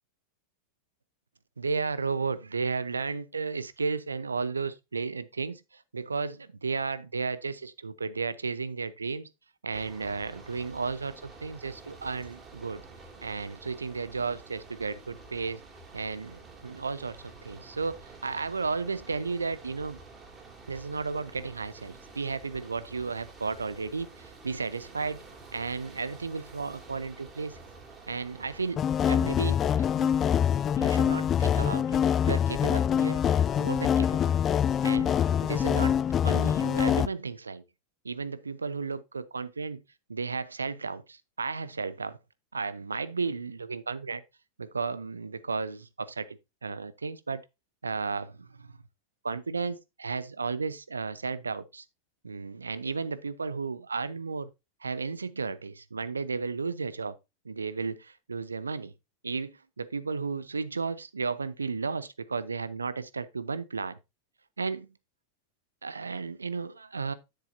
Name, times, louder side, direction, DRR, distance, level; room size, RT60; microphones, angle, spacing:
voice 1, 1.6-9.3 9.6-12.8 13.2-15.6 15.9-20.0 20.7-25.2 25.5-27.6 28.1-28.8 29.1-29.6 29.9-30.1 30.5-32.0 32.3-33.2 33.6-34.2 34.8-35.1 35.4-37.6 38.0-39.8 40.1-42.2 42.5-44.2 44.6-47.4 47.8-48.7 49.2-51.8 52.2-54.5 54.8-57.1 57.4-58.9 59.2-64.0 64.6-64.9 65.8-67.1, right 4 dB, 75° right, 0.7 m, -34 dB
sound 1, 9.7-28.8, right 3 dB, 20° right, 2.8 m, -49 dB
sound 2, 28.8-37.1, left 8 dB, 25° left, 0.3 m, -25 dB
9.8 x 7.7 x 2.6 m
figure-of-eight pair, 90°, 0 cm